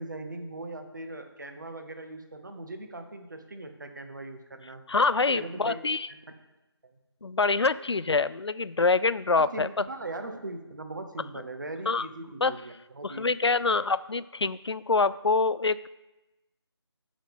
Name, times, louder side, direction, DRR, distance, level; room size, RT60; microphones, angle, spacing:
voice 1, 0.0-4.8 5.3-5.8 6.1-6.2 6.8-6.9 9.4-13.3 13.6-13.8, right 2 dB, 45° right, 6 dB, 1.1 m, -40 dB
voice 2, 4.9-6.1 7.2-9.7 11.9-12.1 12.4-12.5 13.0-15.9, left 4 dB, 70° left, 17 dB, 0.4 m, -25 dB
14.0 x 5.1 x 3.6 m, 1.0 s
figure-of-eight pair, 165°, 14 cm